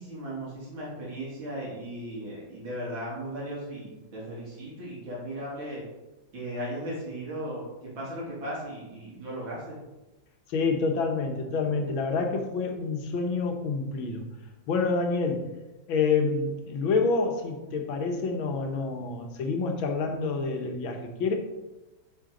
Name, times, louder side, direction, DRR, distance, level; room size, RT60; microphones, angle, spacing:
voice 1, 0.0-5.8 6.3-9.8, right 1 dB, 85° right, -5 dB, 3.4 m, -36 dB
voice 2, 10.5-14.3 14.7-15.5 15.9-21.3, left 4 dB, 80° left, 4 dB, 1.8 m, -27 dB
7.9 x 6.2 x 3.8 m, 1.0 s
omnidirectional pair, 2.2 m